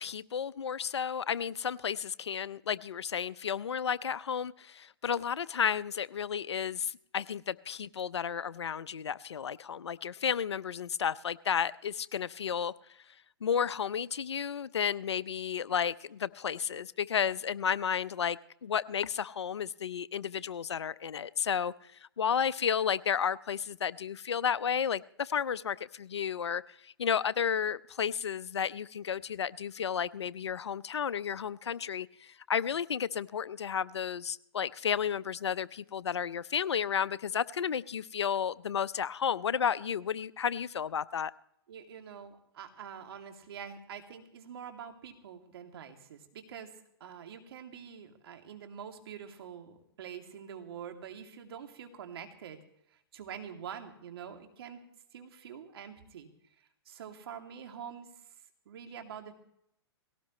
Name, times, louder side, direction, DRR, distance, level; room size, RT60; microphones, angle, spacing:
voice 1, 0.0-12.7 13.4-41.3, left 7 dB, 85° left, 18 dB, 0.6 m, -32 dB
voice 2, 41.7-46.7 47.0-52.6 52.9-54.8 55.1-56.3 56.6-58.1 58.7-59.3, right 8 dB, 65° right, 4 dB, 2.6 m, -46 dB
19.0 x 17.5 x 3.2 m, 0.74 s
hypercardioid pair, 130°, 14 cm